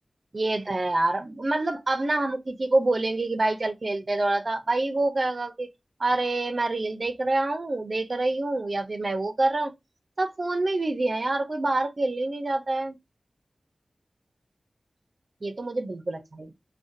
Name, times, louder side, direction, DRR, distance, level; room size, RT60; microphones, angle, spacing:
voice 1, 0.3-5.7 6.0-9.7 10.2-13.0 15.4-16.5, right 2 dB, 55° right, 0.5 m, -26 dB
2.4 x 2.2 x 2.6 m
cardioid pair, 45°, 0 cm